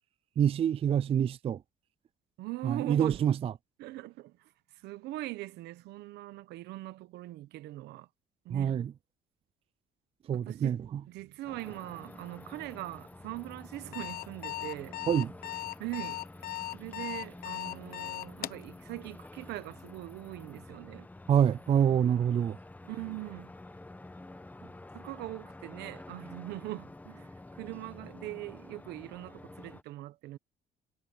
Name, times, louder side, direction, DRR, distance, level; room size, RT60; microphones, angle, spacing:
voice 1, 0.4-1.6 2.6-3.5 8.5-8.9 10.3-11.0 15.1-15.3 21.3-22.6, right 9 dB, 35° right, 0.4 m, -26 dB
voice 2, 2.4-3.2 3.8-4.5 4.8-8.1 8.4-8.9 10.5-10.8 11.1-15.0 15.8-16.2 16.7-21.1 22.9-23.5 24.9-30.4, right 17 dB, 85° right, 1.0 m, -41 dB
sound 1, 11.4-29.8, left 2 dB, 10° left, 1.0 m, -49 dB
Alarm, 13.7-18.6, left 16 dB, 65° left, 0.9 m, -38 dB
cardioid pair, 110°, 17 cm